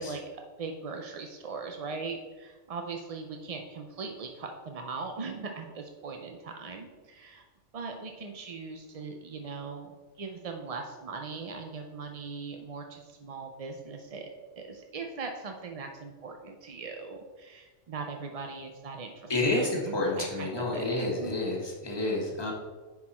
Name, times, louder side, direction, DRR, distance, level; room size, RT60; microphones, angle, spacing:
voice 1, 0.0-7.4 7.7-14.3 14.6-21.4, right 4 dB, 50° right, 3 dB, 0.4 m, -40 dB
voice 2, 19.3-22.5, left 2 dB, 20° left, -3 dB, 1.6 m, -29 dB
9.6 x 4.6 x 4.2 m, 1.3 s
omnidirectional pair, 1.4 m